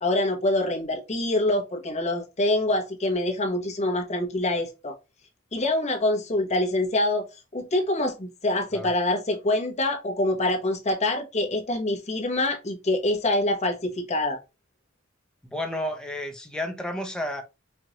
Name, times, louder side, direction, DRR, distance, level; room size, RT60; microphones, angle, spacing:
voice 1, 0.0-5.0 5.5-14.4, left 1 dB, 35° left, 1.0 m, -25 dB
voice 2, 15.4-17.4, left 1 dB, 5° left, 0.7 m, -31 dB
4.6 x 2.5 x 2.9 m
head